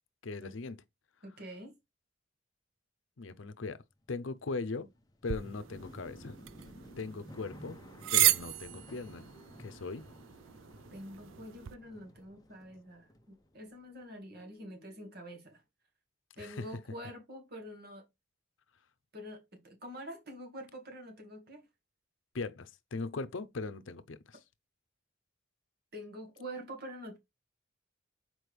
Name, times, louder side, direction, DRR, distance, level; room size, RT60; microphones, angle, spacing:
voice 1, 0.2-0.8 3.2-3.8 4.1-4.9 5.2-6.4 7.0-7.8 8.1-9.3 9.6-10.0 16.4-16.7 22.3-24.4, left 3 dB, 75° left, 0.6 m, -39 dB
voice 2, 1.2-1.8 10.9-15.6 16.4-18.1 19.1-21.7 25.9-27.2, equal, 55° right, 1.9 m, -46 dB
sound 1, 3.9-14.0 14.3-15.1, equal, 20° left, 0.7 m, -54 dB
sound 2, 5.3-11.7, right 13 dB, 85° right, 0.4 m, -34 dB
6.1 x 4.4 x 3.4 m
head